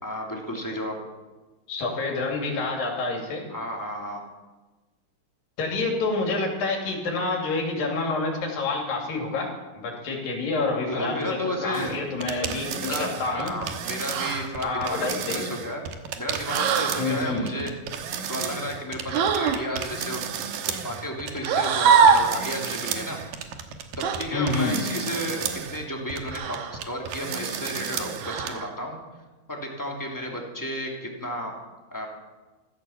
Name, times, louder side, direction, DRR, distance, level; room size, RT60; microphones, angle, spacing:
voice 1, 0.0-1.0 3.5-4.2 10.9-12.0 12.8-15.8 16.2-17.7 18.3-20.2 20.6-23.2 24.0-29.0 29.5-31.6 31.9-32.1, equal, 5° left, -1 dB, 2.3 m, -33 dB
voice 2, 1.7-3.5 5.6-9.5 9.8-13.5 14.6-15.5 17.0-17.5 24.3-24.8, left 3 dB, 90° left, 0 dB, 4.5 m, -28 dB
sound 1, 11.7-28.5, right 8 dB, 85° right, 2.9 m, -33 dB
sound 2, 14.1-14.5 16.5-17.0 19.1-19.6 21.4-22.4 24.0-24.2 26.3-26.8 28.2-28.7, right 6 dB, 65° right, 2.3 m, -22 dB
14.5 x 13.5 x 7.2 m, 1.2 s
omnidirectional pair, 3.9 m